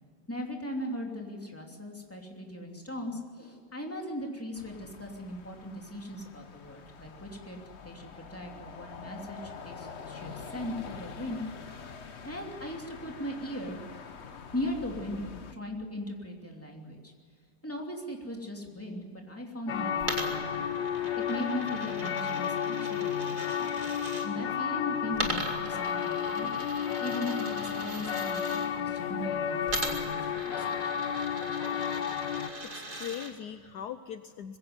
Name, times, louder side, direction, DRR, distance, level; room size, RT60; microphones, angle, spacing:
voice 1, 0.3-7.6 7.8-11.4 11.7-11.9 12.2-13.8 14.5-17.1 17.6-20.7 21.3-23.7 24.2-26.5 27.0-30.9, left 1 dB, 5° left, 1 dB, 2.9 m, -38 dB
sound 1, 4.5-15.5, left 5 dB, 45° left, 1.2 m, -46 dB
sound 2, 19.7-32.5, left 8 dB, 85° left, 1.7 m, -32 dB
Coin (dropping), 20.0-24.3 25.1-28.7 29.7-33.3, right 2 dB, 30° right, 2.5 m, -39 dB
voice 2, 32.6-34.6, left 9 dB, 70° left, 10 dB, 1.2 m, -40 dB
21.5 x 16.5 x 9.6 m, 2.1 s
omnidirectional pair, 1.9 m